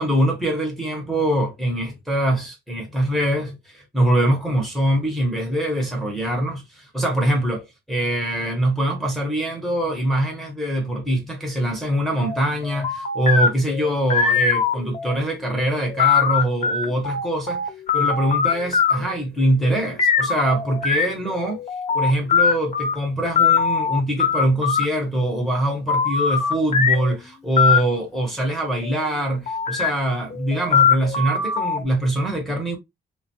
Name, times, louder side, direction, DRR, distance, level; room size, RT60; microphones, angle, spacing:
voice 1, 0.0-17.6 17.9-21.6 21.9-32.8, right 1 dB, ahead, 0.8 m, -23 dB
sound 1, 12.2-15.2 15.6-19.2 20.0-22.9 23.4-24.8 25.9-27.2 27.6-27.8 28.8-29.0 29.5-29.9 30.3-31.8, left 6 dB, 35° left, 0.8 m, -21 dB
3.3 x 2.2 x 2.7 m
cardioid pair, 145°, 19 cm